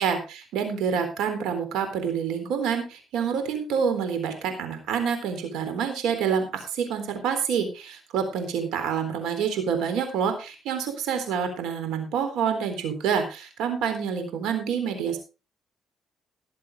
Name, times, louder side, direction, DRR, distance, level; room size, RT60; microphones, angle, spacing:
voice 1, 0.0-15.2, right 7 dB, 90° right, 7 dB, 3.8 m, -27 dB
19.5 x 7.8 x 3.7 m, 0.31 s
cardioid pair, 90°, 0 cm